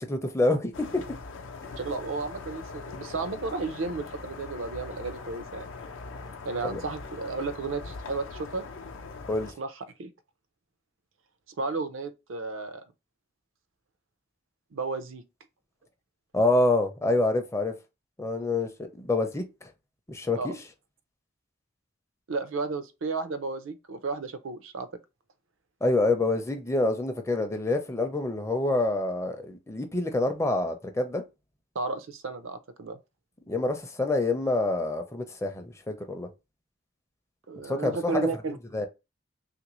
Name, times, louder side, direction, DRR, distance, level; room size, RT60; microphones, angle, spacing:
voice 1, 0.1-1.0 6.6-6.8 9.3-9.5 16.3-17.7 18.2-19.7 20.1-20.5 25.8-31.2 33.5-36.3 37.6-38.3 38.7-38.9, left 2 dB, 15° left, 0.4 m, -27 dB
sound 1, 0.7-9.5, left 4 dB, 75° left, 0.5 m, -41 dB
voice 2, 1.7-5.7 6.4-8.6 9.6-9.7 10.0-10.1 11.6-12.8 14.7-15.2 20.4-20.6 22.3-24.9 31.7-33.0 37.5-38.6, right 3 dB, 80° right, 0.5 m, -33 dB
3.2 x 2.5 x 3.0 m
head